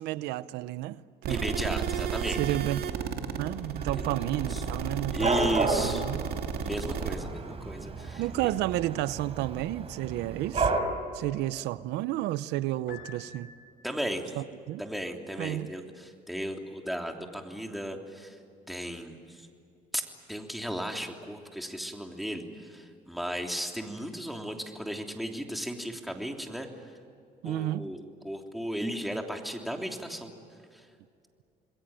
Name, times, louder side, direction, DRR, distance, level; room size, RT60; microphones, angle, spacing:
voice 1, 0.0-1.4 2.4-2.9 3.3-6.2 8.2-10.7 11.1-13.5 14.4-14.8 15.4-15.7 27.4-27.9, right 15 dB, 90° right, 16 dB, 0.7 m, -32 dB
sound 1, 1.2-7.2, right 7 dB, 65° right, 2.6 m, -33 dB
voice 2, 1.3-2.6 3.9-4.1 4.5-4.6 5.1-6.0 6.6-8.2 13.8-14.4 14.8-18.4 18.7-19.5 19.9-26.7 27.4-30.3 30.7-30.9, equal, ahead, 2 dB, 3.2 m, -35 dB
Dog / Cat, 3.8-10.8, right 4 dB, 35° right, 4.2 m, -33 dB
Piano, 12.9-14.1, left 5 dB, 70° left, 5.8 m, -48 dB
27.5 x 21.5 x 9.1 m, 2.4 s
cardioid pair, 110°, 17 cm